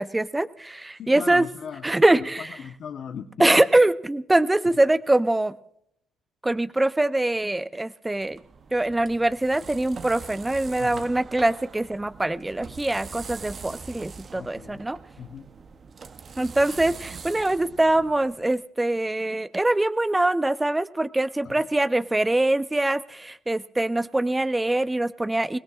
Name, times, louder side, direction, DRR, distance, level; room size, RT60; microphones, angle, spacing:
voice 1, 0.0-1.5 1.8-2.5 3.4-5.5 6.4-8.4 8.7-15.0 16.4-25.6, right 2 dB, 15° right, 13 dB, 0.6 m, -23 dB
voice 2, 0.9-1.9 2.2-3.3 3.6-3.7 4.6-4.8 10.8-11.1 14.3-14.8 15.2-15.5 21.4-21.7, left 7 dB, 55° left, 5 dB, 1.0 m, -38 dB
sound 1, 8.2-18.6, right 5 dB, 45° right, 0.8 m, -43 dB
28.5 x 17.5 x 2.5 m, 0.73 s
supercardioid pair, 65°, 0 cm